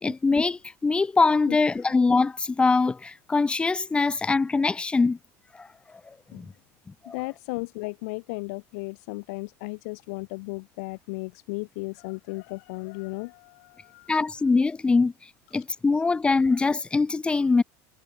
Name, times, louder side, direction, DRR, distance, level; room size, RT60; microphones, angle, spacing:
voice 1, 0.0-5.2 5.5-5.7 6.1-6.4 7.0-7.2 14.1-15.1 15.5-17.6, left 4 dB, 10° left, 2.6 m, -23 dB
voice 2, 7.1-14.2, left 28 dB, 70° left, 8.0 m, -35 dB
supercardioid pair, 150°, 9 cm